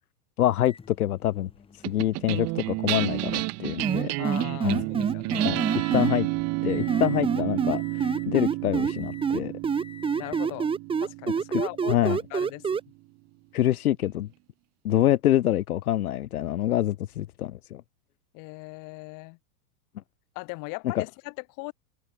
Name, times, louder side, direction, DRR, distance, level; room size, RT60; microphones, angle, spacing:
voice 1, 0.4-1.5 1.9-4.1 4.6-4.8 5.4-5.6 5.9-6.3 6.6-9.5 11.5-11.6 11.9-12.2 13.5-14.3 14.8-17.8 20.9-21.0, left 13 dB, 85° left, 2.1 m, -26 dB
Microwave oven, 0.6-6.3 6.7-7.3 7.7-8.3 8.7-9.4 9.8-10.6 11.5-11.6 13.6-13.7, left 5 dB, 15° left, 4.1 m, -50 dB
sound 1, 1.8-12.4, right 24 dB, 35° right, 1.3 m, -31 dB
sound 2, 3.8-6.1 6.9-8.9 9.2-12.8, right 6 dB, 10° right, 1.2 m, -26 dB
voice 2, 4.2-5.5 10.2-10.7 11.0-12.8 18.3-19.4 20.3-21.7, left 29 dB, 45° left, 6.4 m, -39 dB
supercardioid pair, 135°, 43 cm